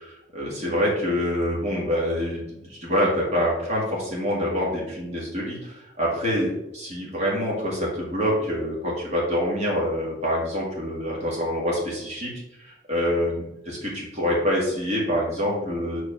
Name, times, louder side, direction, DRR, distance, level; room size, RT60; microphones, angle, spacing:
voice 1, 0.3-12.3 12.6-16.0, equal, 40° right, -4 dB, 2.0 m, -26 dB
5.0 x 4.4 x 5.0 m, 0.90 s
head